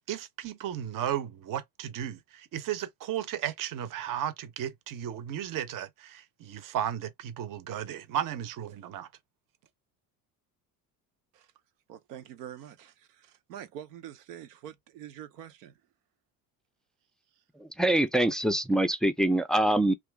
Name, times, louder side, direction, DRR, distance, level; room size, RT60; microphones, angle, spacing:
voice 1, 0.1-9.1, right 10 dB, 45° right, 0.7 m, -34 dB
voice 2, 11.9-15.8, right 10 dB, 85° right, 0.7 m, -45 dB
voice 3, 17.5-19.9, right 1 dB, ahead, 0.4 m, -25 dB
2.8 x 2.4 x 3.4 m
hypercardioid pair, 70°, 47 cm